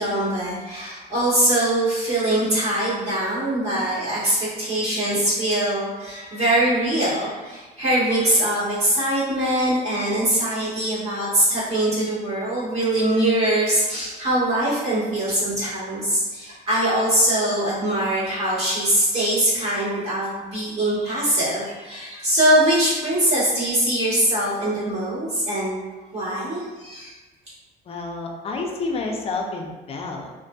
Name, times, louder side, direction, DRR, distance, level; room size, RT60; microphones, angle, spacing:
voice 1, 0.0-25.8 26.1-27.1, right 1 dB, 40° right, -11 dB, 1.5 m, -22 dB
voice 2, 27.9-30.3, left 3 dB, 35° left, 2 dB, 0.4 m, -29 dB
2.5 x 2.5 x 2.2 m, 1.2 s
cardioid pair, 110°, 17 cm